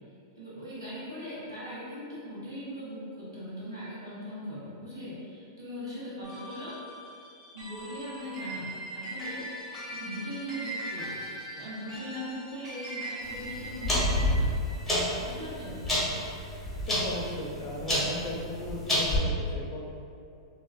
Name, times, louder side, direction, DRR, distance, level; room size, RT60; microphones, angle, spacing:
voice 1, 0.3-6.8 7.1-7.2 7.5-9.5 9.9-11.3 11.6-14.5 15.2-15.8, equal, 90° right, -9 dB, 0.8 m, -40 dB
sound 1, 6.2-16.8, right 1 dB, 30° right, 1.0 m, -41 dB
sound 2, 13.3-19.2, left 1 dB, 5° left, 0.8 m, -29 dB
voice 2, 16.9-19.8, left 1 dB, 35° left, -1 dB, 0.5 m, -36 dB
2.4 x 2.2 x 2.3 m, 2.4 s
hypercardioid pair, 110°, 2 cm